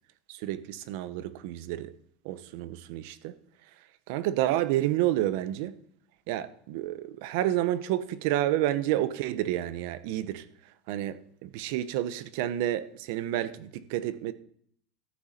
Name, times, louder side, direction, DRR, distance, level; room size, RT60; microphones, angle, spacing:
voice 1, 0.3-1.9 2.2-3.4 4.1-5.8 6.3-10.5 10.9-14.3, right 13 dB, 70° right, 0.8 m, -30 dB
13.5 x 12.0 x 4.3 m
supercardioid pair, 135°, 0 cm